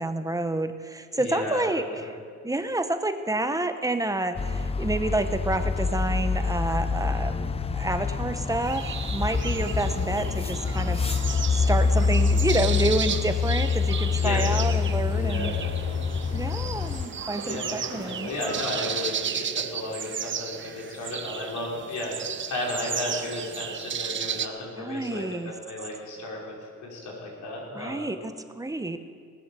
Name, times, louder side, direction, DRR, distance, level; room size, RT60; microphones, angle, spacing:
voice 1, 0.0-2.1 2.4-15.6 16.3-18.3 24.8-25.5 27.7-29.0, right 2 dB, 10° right, 9 dB, 0.9 m, -29 dB
voice 2, 1.1-2.1 14.2-14.6 15.1-16.0 17.4-26.6 26.8-28.1, left 2 dB, 70° left, -3 dB, 4.5 m, -34 dB
sound 1, 4.3-17.1, left 5 dB, 20° left, 0.5 m, -26 dB
sound 2, 8.6-24.5, right 8 dB, 40° right, 0.7 m, -34 dB
sound 3, 9.3-19.2, right 4 dB, 75° right, 3.1 m, -43 dB
19.0 x 7.7 x 6.9 m, 2.1 s
cardioid pair, 90°, 30 cm